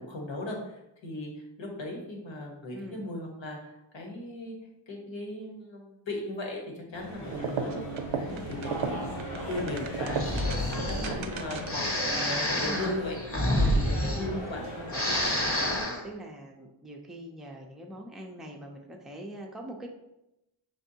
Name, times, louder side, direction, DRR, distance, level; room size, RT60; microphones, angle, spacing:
voice 1, 0.0-4.5 4.9-7.9 8.2-10.3 10.7-14.6 15.1-15.3, left 1 dB, 65° left, 0 dB, 1.2 m, -37 dB
voice 2, 2.7-3.0 12.6-12.9 13.6-13.8 14.9-19.9, right 1 dB, ahead, 0 dB, 0.5 m, -43 dB
sound 1, 6.9-15.8, equal, 80° left, 1.4 m, -38 dB
sound 2, 7.3-11.9, right 5 dB, 70° right, 0.6 m, -35 dB
Breathing, 10.1-11.1 11.7-14.6 14.8-16.0, left 1 dB, 30° left, 0.9 m, -28 dB
5.1 x 3.5 x 2.8 m, 0.90 s
wide cardioid pair, 75°, 49 cm